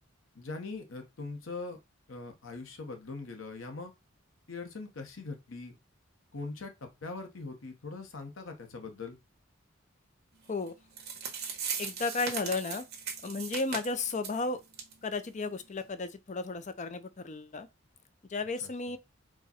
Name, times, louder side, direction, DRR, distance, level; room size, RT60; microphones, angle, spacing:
voice 1, 0.3-1.8 2.1-3.9 4.5-5.8 6.3-9.2 18.6-18.7, left 3 dB, 75° left, 0.9 m, -41 dB
sound 1, 10.7-10.8 11.0-14.4 14.7-14.9 15.2-15.3 15.8-15.9, right 6 dB, 50° right, 1.4 m, -38 dB
voice 2, 11.8-12.9 13.2-14.6 15.0-17.7 18.3-19.0, left 3 dB, 35° left, 0.5 m, -34 dB
4.7 x 2.2 x 4.2 m
head